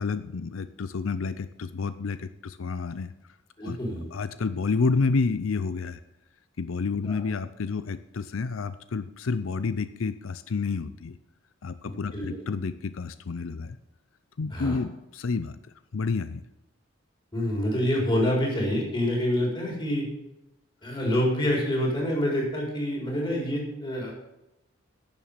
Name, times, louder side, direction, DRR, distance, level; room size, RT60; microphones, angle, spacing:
voice 1, 0.0-3.1 3.6-3.8 4.1-6.0 6.6-11.2 11.6-13.8 14.4-15.5 15.9-16.4, left 4 dB, 90° left, 13 dB, 0.5 m, -29 dB
voice 2, 3.6-4.1 7.0-7.2 11.8-12.4 14.5-14.8 17.3-20.1 20.8-24.1, equal, 25° left, -2 dB, 4.5 m, -27 dB
11.0 x 7.2 x 7.4 m, 0.92 s
head